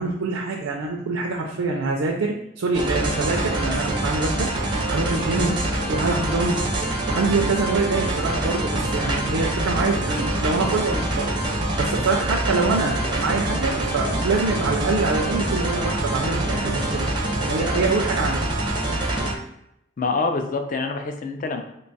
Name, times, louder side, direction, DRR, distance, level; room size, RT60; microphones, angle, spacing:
voice 1, 0.0-4.5 4.9-5.5 5.9-6.7 7.1-11.3 11.8-17.1 17.4-18.5, right 3 dB, 90° right, 1 dB, 0.4 m, -25 dB
sound 1, 2.7-19.3, right 1 dB, 25° right, 0.4 m, -25 dB
voice 2, 20.0-21.6, left 3 dB, 40° left, 5 dB, 0.4 m, -26 dB
3.0 x 2.3 x 3.9 m, 0.80 s
head